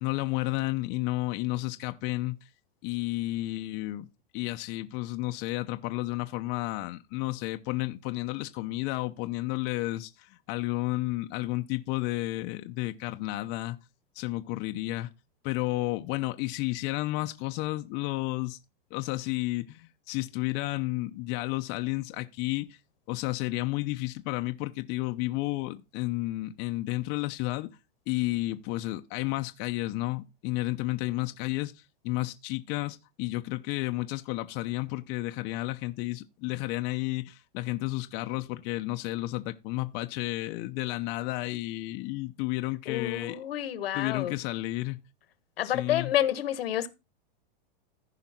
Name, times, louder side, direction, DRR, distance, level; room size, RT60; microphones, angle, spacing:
voice 1, 0.0-2.5 2.8-4.1 4.3-13.8 14.2-15.1 15.4-18.6 18.9-22.8 23.1-27.7 28.1-43.4 43.9-45.0 45.6-46.1, left 19 dB, 35° left, 0.7 m, -32 dB
voice 2, 42.9-44.3 45.6-46.9, left 12 dB, 85° left, 1.5 m, -29 dB
14.5 x 5.1 x 4.3 m
supercardioid pair, 145°, 29 cm